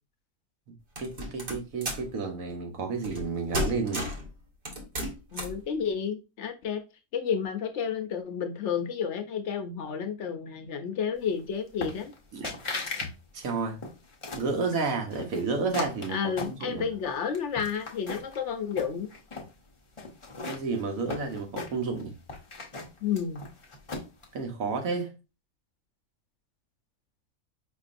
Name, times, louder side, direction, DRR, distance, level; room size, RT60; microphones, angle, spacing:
voice 1, 0.7-4.1 12.3-12.6 13.0-13.1 13.3-13.8 14.4-16.2 16.4-16.9 20.4-22.1 24.3-25.1, right 4 dB, 85° right, 1.3 m, -31 dB
sound 1, 1.0-2.1 3.0-3.3 3.5-4.3 4.7-5.6, equal, 45° right, 1.1 m, -33 dB
voice 2, 5.3-6.8 7.1-12.1 16.1-19.1 23.0-23.4, left 7 dB, 65° left, 0.8 m, -31 dB
sound 2, 11.8-12.2 12.4-13.1 13.4-14.5 15.1-17.0 17.3-18.4 18.7-19.5 20.0-22.0 22.3-24.2, left 3 dB, 30° left, 0.6 m, -37 dB
5.1 x 2.6 x 2.5 m
omnidirectional pair, 1.4 m